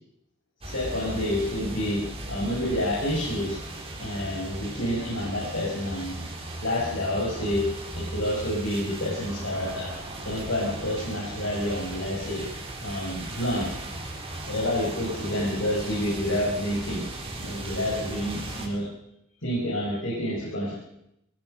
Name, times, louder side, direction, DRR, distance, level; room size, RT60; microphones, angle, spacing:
voice 1, 0.6-3.6 4.0-6.2 6.6-7.7 7.9-9.9 10.2-12.5 12.8-13.7 14.5-17.1 17.3-18.8 19.4-20.7, left 1 dB, 70° left, -4 dB, 6.0 m, -28 dB
sound 1, 0.6-18.7, right 1 dB, 30° right, 4.2 m, -37 dB
21.0 x 18.5 x 6.7 m, 0.80 s
head